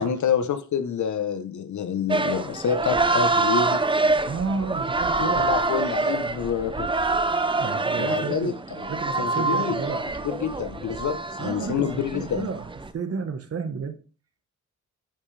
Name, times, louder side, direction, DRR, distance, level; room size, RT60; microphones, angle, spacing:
voice 1, 0.0-3.8 5.1-6.9 8.0-8.9 9.2-9.8 10.2-12.5, left 7 dB, 70° left, 10 dB, 1.0 m, -27 dB
sound 1, 2.1-12.9, right 3 dB, 15° right, 0.6 m, -26 dB
voice 2, 4.2-5.5 7.6-8.6 8.9-10.0 11.4-12.7 12.9-14.0, right 5 dB, 50° right, 8 dB, 1.3 m, -31 dB
10.5 x 5.4 x 3.4 m, 0.37 s
cardioid pair, 95°, 30 cm